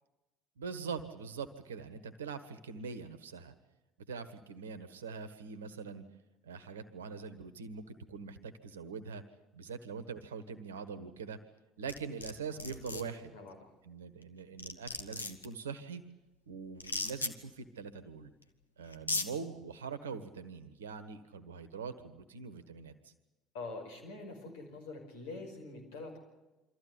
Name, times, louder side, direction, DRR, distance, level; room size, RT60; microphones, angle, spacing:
voice 1, 0.6-3.5 4.1-6.0 6.4-9.2 9.5-11.4 11.8-13.3 13.8-16.0 16.5-18.3 18.8-23.1, right 5 dB, 80° right, 12 dB, 1.4 m, -43 dB
sound 1, 11.9-12.3 12.6-13.0 14.2-14.3 14.6-15.5 16.8-17.3 18.4-18.5 18.9-19.3, left 3 dB, 90° left, 1.1 m, -35 dB
voice 2, 23.5-26.2, left 3 dB, 70° left, 3 dB, 5.4 m, -45 dB
24.5 x 14.5 x 9.7 m, 1.1 s
figure-of-eight pair, 60°, 0 cm